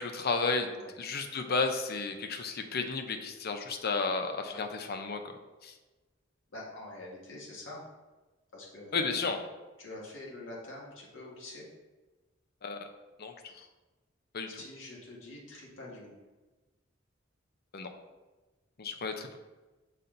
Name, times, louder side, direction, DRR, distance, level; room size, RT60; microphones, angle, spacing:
voice 1, 0.0-0.7 1.0-5.4 5.6-5.7 8.9-9.4 12.6-12.9 13.2-13.6 14.3-14.5 17.7-17.9 18.8-19.4, left 4 dB, 55° left, 6 dB, 0.6 m, -33 dB
voice 2, 6.5-7.8 8.5-9.1 9.8-11.6 14.5-16.2, left 2 dB, 75° left, -4 dB, 1.8 m, -46 dB
6.9 x 4.2 x 3.9 m, 1.2 s
head